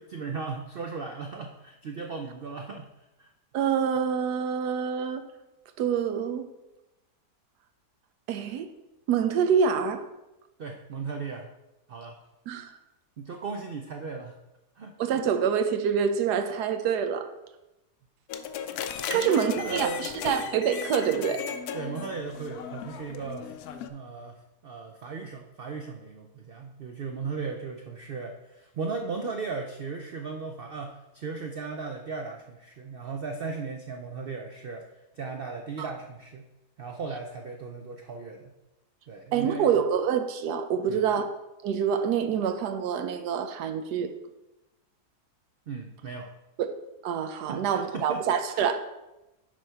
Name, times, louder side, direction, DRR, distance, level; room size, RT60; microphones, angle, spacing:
voice 1, 0.0-3.3 10.6-11.5 11.9-12.2 13.2-14.4 14.8-14.9 19.1-20.1 21.7-23.5 23.9-24.4 24.6-34.9 35.1-36.5 36.8-38.5 39.1-39.7 40.8-41.1 45.7-46.3 47.5-48.2 48.5-48.8, right 4 dB, 70° right, 3 dB, 0.5 m, -36 dB
voice 2, 3.5-5.2 5.8-6.5 8.3-8.7 9.1-10.0 12.5-12.7 15.0-17.3 19.1-21.4 35.8-35.9 39.3-41.2 41.6-44.1 46.6-46.8 47.0-48.8, right 7 dB, 90° right, 8 dB, 1.2 m, -26 dB
sound 1, 18.3-23.9, left 8 dB, 75° left, 1.0 m, -36 dB
6.3 x 4.6 x 5.6 m, 0.97 s
omnidirectional pair, 1.7 m